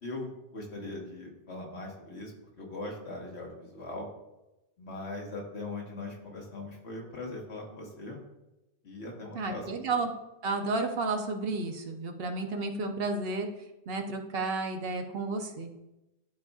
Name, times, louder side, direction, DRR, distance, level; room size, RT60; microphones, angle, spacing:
voice 1, 0.0-4.1 4.8-8.2 8.8-9.7, left 2 dB, 85° left, -1 dB, 1.6 m, -40 dB
voice 2, 9.3-10.1 10.4-13.5 13.9-15.7, right 3 dB, 65° right, 5 dB, 1.0 m, -32 dB
12.0 x 4.0 x 2.4 m, 0.95 s
omnidirectional pair, 1.1 m